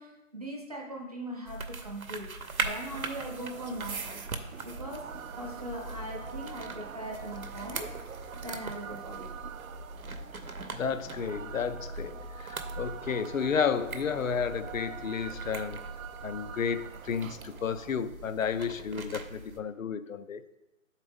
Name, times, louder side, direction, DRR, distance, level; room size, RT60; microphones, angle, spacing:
voice 1, 0.0-4.2 4.6-5.1 5.4-7.9 8.3-9.3, right 1 dB, 30° right, -1 dB, 0.6 m, -40 dB
sound 1, 1.5-19.6, right 3 dB, 90° right, 0.9 m, -41 dB
sound 2, 2.9-17.9, right 8 dB, 70° right, 0.5 m, -46 dB
voice 2, 10.7-15.8 16.2-20.6, left 6 dB, 70° left, 12 dB, 0.5 m, -32 dB
8.6 x 4.1 x 3.5 m, 1.0 s
figure-of-eight pair, 165°, 41 cm